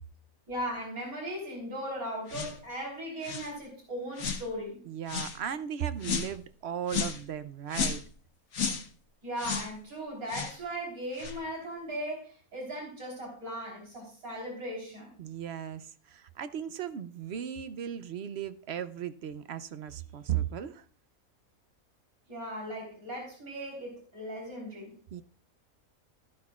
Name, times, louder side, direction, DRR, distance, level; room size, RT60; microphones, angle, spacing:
voice 1, 0.5-4.8 9.2-15.2 22.3-25.0, equal, 80° right, -2 dB, 4.4 m, -38 dB
sound 1, 2.3-2.6 3.2-3.5 4.2-4.4 5.1-5.4 6.0-6.3 6.9-7.2 7.7-8.1 8.5-8.9 9.4-9.7 10.3-10.6 11.1-11.4, left 6 dB, 70° left, 1.5 m, -33 dB
voice 2, 4.8-8.0 15.2-20.8 25.1-25.2, right 9 dB, 55° right, 12 dB, 0.8 m, -36 dB
14.0 x 13.5 x 2.4 m, 0.42 s
omnidirectional pair, 1.5 m